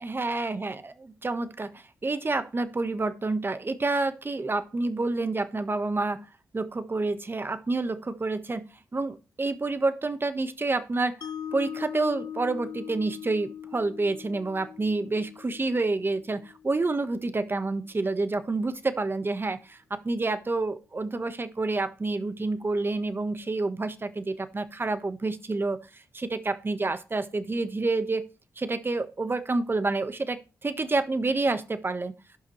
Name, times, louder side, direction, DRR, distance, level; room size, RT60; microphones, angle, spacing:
voice 1, 0.0-6.2 6.5-11.2 11.5-25.8 26.1-28.2 28.6-32.1, right 3 dB, 35° right, 11 dB, 1.2 m, -28 dB
Mallet percussion, 11.2-17.4, left 9 dB, 70° left, 0.8 m, -41 dB
17.0 x 5.7 x 3.1 m, 0.31 s
supercardioid pair, 50°, 6 cm